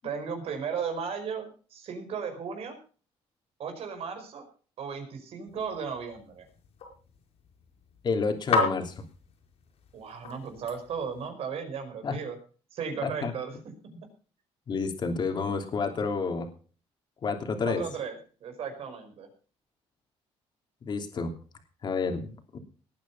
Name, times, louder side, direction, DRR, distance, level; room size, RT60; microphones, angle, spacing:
voice 1, 0.0-2.8 3.6-4.5 4.8-6.5 9.9-12.4 12.7-13.5 17.6-19.3, right 6 dB, 65° right, 6 dB, 5.1 m, -35 dB
sound 1, 5.5-11.3, left 4 dB, 70° left, 4.7 m, -35 dB
voice 2, 8.0-9.0 12.0-12.2 13.0-13.3 14.7-16.5 17.2-17.8 20.8-21.3 21.8-22.6, left 4 dB, 45° left, 5 dB, 3.1 m, -29 dB
19.0 x 9.1 x 5.6 m, 0.39 s
cardioid pair, 130°, 11 cm